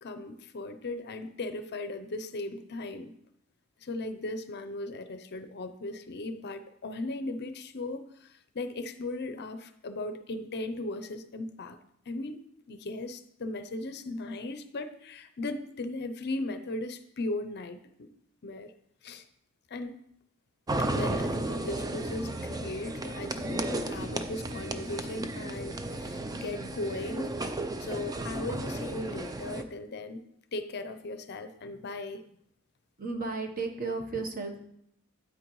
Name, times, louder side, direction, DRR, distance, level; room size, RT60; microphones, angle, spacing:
voice 1, 0.0-3.1 3.8-11.8 12.1-12.4 12.7-18.1 18.4-18.7 19.0-19.3 19.7-20.0 20.8-27.4 27.8-30.2 30.5-32.3 34.1-34.2, left 2 dB, 50° left, 10 dB, 0.6 m, -37 dB
sound 1, 20.7-29.6, right 2 dB, 15° right, 0.5 m, -34 dB
voice 2, 33.0-34.6, right 3 dB, 40° right, 4 dB, 1.1 m, -34 dB
9.0 x 8.6 x 3.1 m, 0.72 s
head